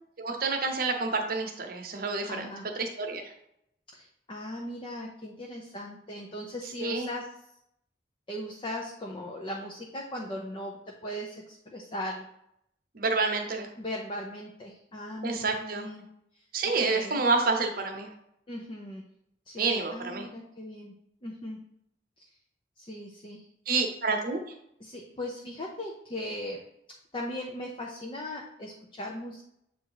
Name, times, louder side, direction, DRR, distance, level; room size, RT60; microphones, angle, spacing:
voice 1, 0.2-2.5 2.8-3.3 6.8-7.1 12.9-13.7 15.2-15.9 16.5-18.1 19.6-20.3 23.7-24.4, right 3 dB, 55° right, 3 dB, 0.9 m, -28 dB
voice 2, 2.3-2.7 3.9-7.3 8.3-10.7 11.0-12.2 13.8-16.1 16.3-16.5 16.8-17.2 18.5-19.0 19.5-20.9 21.2-21.6 22.2-22.3 22.8-23.5 24.8-26.6 27.1-29.4, left 1 dB, 30° left, -1 dB, 0.7 m, -38 dB
7.6 x 2.7 x 4.7 m, 0.76 s
head